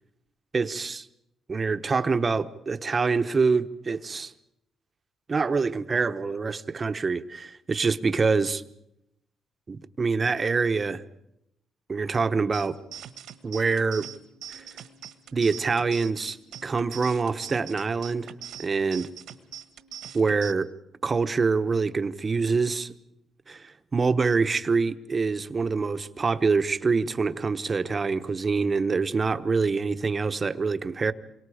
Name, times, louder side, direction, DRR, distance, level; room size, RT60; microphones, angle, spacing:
voice 1, 0.5-1.1 1.5-4.3 5.3-8.6 9.7-11.0 11.9-12.8 13.4-14.1 14.5-14.7 15.3-16.4 16.6-18.3 18.6-19.1 20.1-20.7 21.0-22.9 23.5-31.1, right 4 dB, 35° right, 1.1 m, -25 dB
sound 1, 12.5-20.5, right 10 dB, 80° right, 1.6 m, -43 dB
27.5 x 23.5 x 5.0 m
cardioid pair, 90°, 0 cm